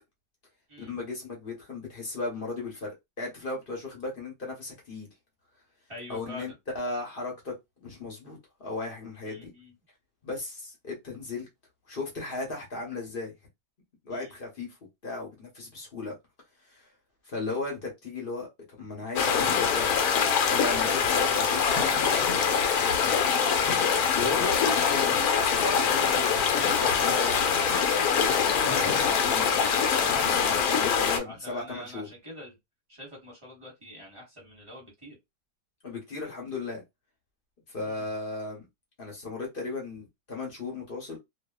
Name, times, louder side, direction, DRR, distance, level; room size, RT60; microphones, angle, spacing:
voice 1, 0.8-5.1 6.1-7.5 7.8-9.5 10.2-11.5 11.9-13.3 14.0-14.8 15.0-16.1 16.7-16.9 17.2-19.9 20.5-22.0 23.7-27.6 28.6-29.6 30.0-32.1 35.8-36.8 37.7-38.7 39.0-41.2, left 3 dB, 45° left, 0.8 m, -36 dB
voice 2, 5.9-6.5 9.3-9.7 14.1-14.3 20.8-21.3 21.6-23.2 31.2-32.6 32.9-35.2 37.8-38.1, equal, 20° right, 1.1 m, -44 dB
sound 1, 19.2-31.2, left 6 dB, 70° left, 1.1 m, -24 dB
2.6 x 2.3 x 2.3 m
omnidirectional pair, 1.8 m